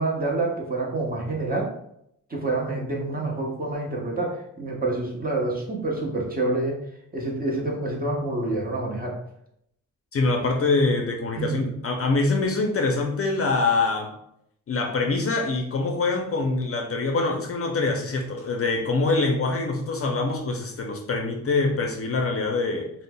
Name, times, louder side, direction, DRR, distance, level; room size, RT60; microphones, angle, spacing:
voice 1, 0.0-1.7 2.3-6.8 7.1-9.2 11.4-11.6, right 2 dB, 25° right, -2 dB, 0.8 m, -27 dB
voice 2, 10.1-14.1 14.7-22.9, left 3 dB, 45° left, 2 dB, 0.5 m, -24 dB
5.2 x 2.0 x 2.2 m, 0.75 s
wide cardioid pair, 110°, 33 cm